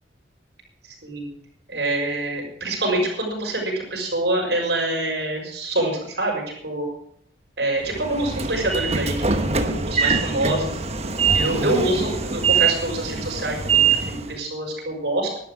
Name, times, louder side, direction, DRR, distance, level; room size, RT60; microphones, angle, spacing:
voice 1, 1.7-6.9 7.6-9.1 9.4-10.8 11.3-15.3, right 1 dB, 65° right, 0 dB, 6.4 m, -25 dB
Train / Sliding door, 7.9-14.4, right 5 dB, 35° right, 1.1 m, -23 dB
12.5 x 11.5 x 6.4 m, 0.71 s
head